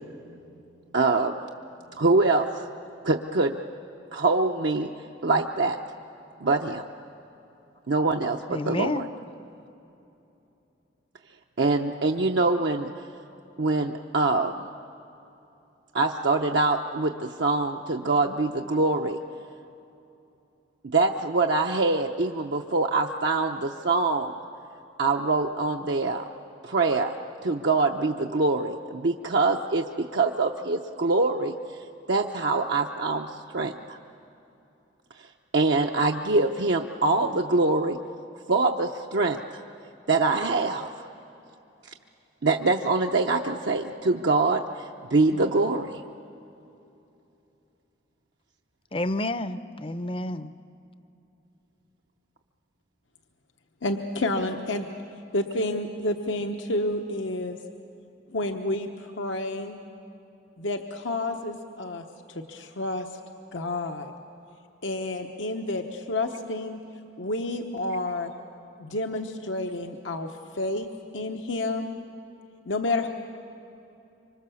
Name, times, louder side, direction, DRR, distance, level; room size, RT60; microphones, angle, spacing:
voice 1, 0.9-1.3 2.0-2.7 3.0-3.5 4.1-4.9 5.2-5.8 6.4-6.9 7.9-9.1 11.6-12.9 13.6-14.6 15.9-19.2 20.9-24.3 25.0-26.3 26.6-27.1 27.4-31.5 32.1-34.0 35.5-38.0 38.5-39.4 40.1-40.9 42.4-46.0, right 3 dB, 65° right, 2 dB, 0.7 m, -24 dB
voice 2, 8.5-9.1 48.9-50.5, left 1 dB, 30° left, 13 dB, 0.6 m, -29 dB
voice 3, 53.8-54.9 55.3-57.6 58.3-59.8 60.6-63.1 63.5-64.1 64.8-66.8 67.2-68.3 68.8-70.9 71.1-71.9 72.7-73.1, left 2 dB, 85° left, 4 dB, 1.1 m, -30 dB
25.5 x 25.0 x 7.0 m, 2.9 s
head